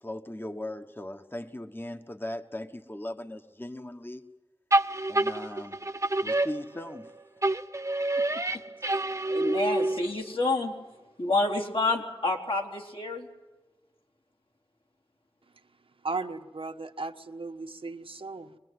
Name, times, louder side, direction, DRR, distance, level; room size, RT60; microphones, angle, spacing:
voice 1, 0.0-4.2 5.1-5.8 6.2-7.1, left 1 dB, 25° left, 1.2 m, -38 dB
sound 1, 4.7-7.1 7.4-10.3, right 2 dB, 30° right, 0.9 m, -27 dB
voice 2, 9.3-10.7 11.2-13.3, left 2 dB, 70° left, 3.7 m, -28 dB
voice 3, 16.0-18.6, right 3 dB, 75° right, 1.3 m, -36 dB
25.0 x 20.5 x 9.6 m
wide cardioid pair, 50°, 9 cm